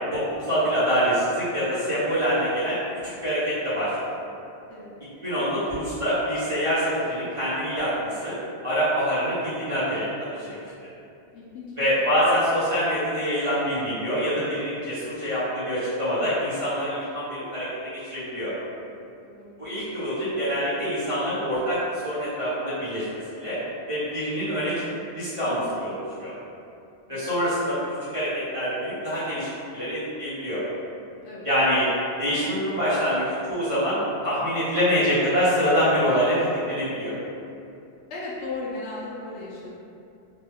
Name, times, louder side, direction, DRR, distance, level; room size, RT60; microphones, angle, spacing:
voice 1, 0.1-2.8 3.2-4.2 5.2-8.4 8.6-10.6 11.8-18.5 19.6-23.1 23.3-23.6 23.9-24.7 25.1-26.3 27.1-27.9 28.1-29.5 29.7-30.6 31.4-31.9 32.2-36.4 36.7-37.1, equal, 30° right, -15 dB, 1.2 m, -25 dB
voice 2, 11.3-11.8 19.2-19.5 27.1-27.3 31.2-31.5 38.1-39.7, left 3 dB, 90° left, -6 dB, 0.9 m, -36 dB
3.3 x 2.2 x 3.5 m, 2.6 s
omnidirectional pair, 1.1 m